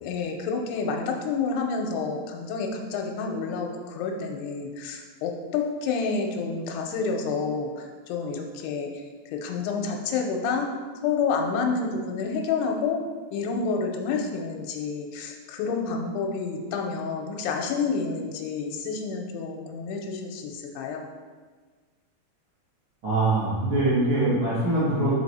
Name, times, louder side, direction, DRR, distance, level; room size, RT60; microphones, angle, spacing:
voice 1, 0.0-7.7 8.1-8.9 9.3-10.7 11.0-13.0 13.3-21.0, left 5 dB, 90° left, 2 dB, 2.7 m, -29 dB
voice 2, 23.0-25.2, right 2 dB, 45° right, -12 dB, 1.8 m, -23 dB
5.2 x 4.9 x 4.1 m, 1.5 s
omnidirectional pair, 4.5 m